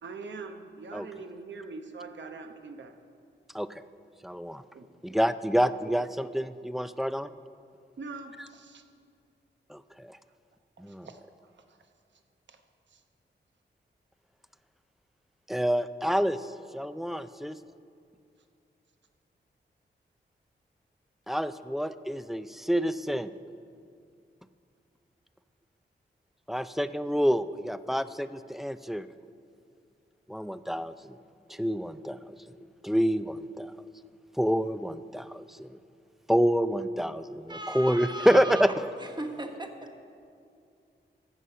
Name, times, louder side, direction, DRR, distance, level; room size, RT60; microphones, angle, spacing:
voice 1, 0.0-2.9 4.7-4.9 5.8-6.0 8.0-8.8 10.8-11.8 12.5-12.6 12.9-13.0, right 4 dB, 70° right, 6 dB, 0.9 m, -43 dB
voice 2, 4.2-4.6 5.0-7.3 9.7-10.2 10.8-11.1 15.5-17.6 21.3-23.3 26.5-29.1 30.3-31.2 31.5-32.4 32.8-33.7 34.4-35.8 36.3-38.7, equal, ahead, 13 dB, 0.4 m, -28 dB
voice 3, 37.5-38.7 39.0-40.0, right 1 dB, 25° right, 5 dB, 1.2 m, -37 dB
14.0 x 8.1 x 5.6 m, 2.4 s
cardioid pair, 75°, 19 cm